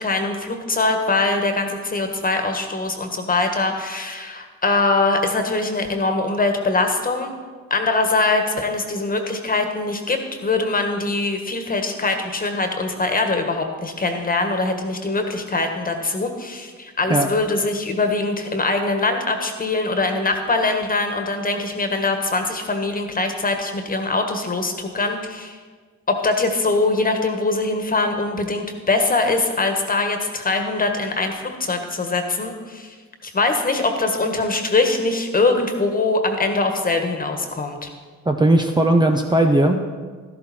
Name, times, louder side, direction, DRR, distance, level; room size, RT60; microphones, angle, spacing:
voice 1, 0.0-7.3 7.7-25.6 26.1-32.9 33.2-37.9, left 3 dB, 30° left, 5 dB, 1.7 m, -22 dB
voice 2, 38.3-39.8, right 1 dB, 15° right, 3 dB, 0.8 m, -17 dB
13.0 x 12.0 x 4.4 m, 1.5 s
cardioid pair, 90°, 30 cm